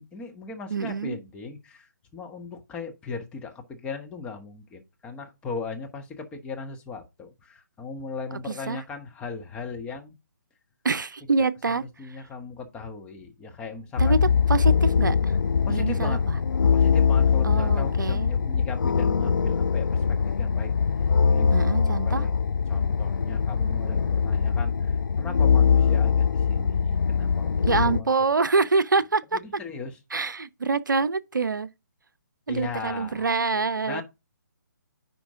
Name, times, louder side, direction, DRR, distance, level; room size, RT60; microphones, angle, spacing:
voice 1, 0.0-10.1 11.7-14.2 15.6-16.2 16.7-20.7 21.3-22.3 22.7-28.1 29.3-30.0 32.5-33.3 33.9-34.0, left 4 dB, 10° left, 1.2 m, -38 dB
voice 2, 0.7-1.2 8.3-8.8 10.8-12.2 14.0-15.4 15.7-16.4 17.4-18.3 21.5-22.3 27.6-29.4 30.1-31.7 32.5-34.0, right 4 dB, 75° right, 0.6 m, -26 dB
sound 1, 14.0-28.0, left 6 dB, 70° left, 0.4 m, -22 dB
10.0 x 4.5 x 3.6 m
figure-of-eight pair, 145°, 11 cm